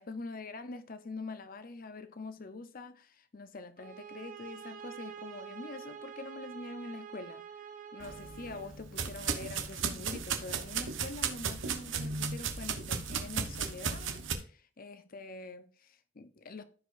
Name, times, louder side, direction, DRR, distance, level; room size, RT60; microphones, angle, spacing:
voice 1, 0.0-7.4 7.9-16.6, left 3 dB, 50° left, 0.7 m, -45 dB
sound 1, 3.8-8.7, right 7 dB, 45° right, 0.9 m, -47 dB
sound 2, 8.0-14.3, right 6 dB, 75° right, 1.0 m, -35 dB
14.5 x 5.0 x 2.6 m
head